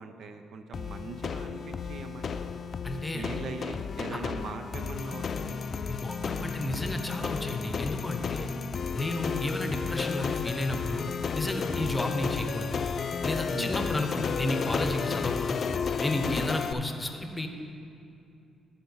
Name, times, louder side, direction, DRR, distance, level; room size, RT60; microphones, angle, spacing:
voice 1, 0.0-2.5 3.1-5.7 8.6-8.7 11.7-11.9 13.5-13.8 16.2-16.5, right 4 dB, 65° right, 7 dB, 0.5 m, -41 dB
sound 1, 0.7-16.7, left 6 dB, 50° left, 0.3 m, -32 dB
voice 2, 2.8-3.2 4.1-4.2 5.9-8.5 8.9-11.1 11.3-12.8 13.2-15.7 16.0-17.5, left 1 dB, 15° left, 5 dB, 0.8 m, -32 dB
12.5 x 4.3 x 5.5 m, 2.6 s
cardioid pair, 90°, 0 cm